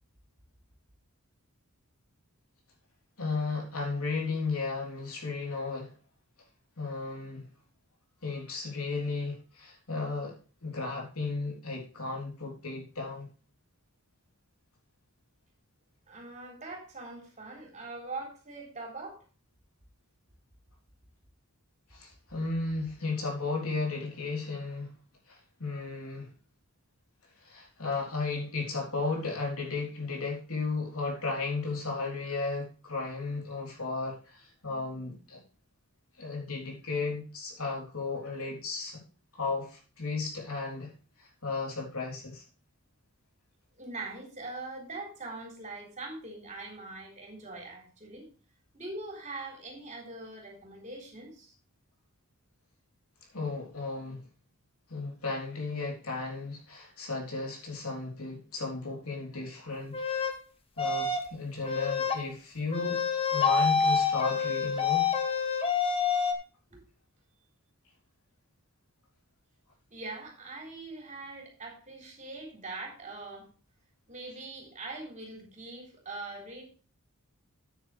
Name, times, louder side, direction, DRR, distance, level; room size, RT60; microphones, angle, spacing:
voice 1, 3.2-5.9 6.8-7.5 8.2-10.4 10.6-13.3 21.9-24.9 25.3-26.3 27.4-35.4 36.2-39.0 39.4-40.9 41.2-42.4 53.3-54.2 54.9-59.9 60.8-63.0 63.3-65.1, left 3 dB, 75° left, 3.6 m, -34 dB
voice 2, 16.1-19.2 43.8-48.2 48.7-51.5 66.7-66.8 69.9-73.5 74.1-76.6, right 2 dB, 35° right, 3.8 m, -42 dB
sound 1, 59.9-60.3 60.8-61.3 61.6-62.2 62.7-66.3, left 5 dB, 25° left, 1.3 m, -27 dB
9.3 x 9.0 x 3.3 m
head